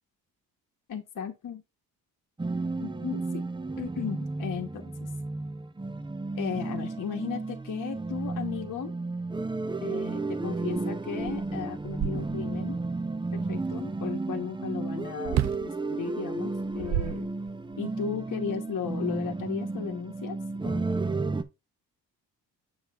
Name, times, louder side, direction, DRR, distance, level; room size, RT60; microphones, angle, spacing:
voice 1, 0.9-1.6 2.8-3.4 3.8-5.1 6.3-8.9 9.8-12.8 13.3-17.3 17.8-20.4 20.6-21.2, left 7 dB, 50° left, 1.2 m, -36 dB
sound 1, 2.4-21.4, right 3 dB, 10° right, 0.8 m, -33 dB
sound 2, 10.8-10.9 11.2-12.7 15.2-15.7 16.5-17.8, right 12 dB, 45° right, 0.5 m, -31 dB
7.5 x 6.8 x 2.4 m
cardioid pair, 80°, 39 cm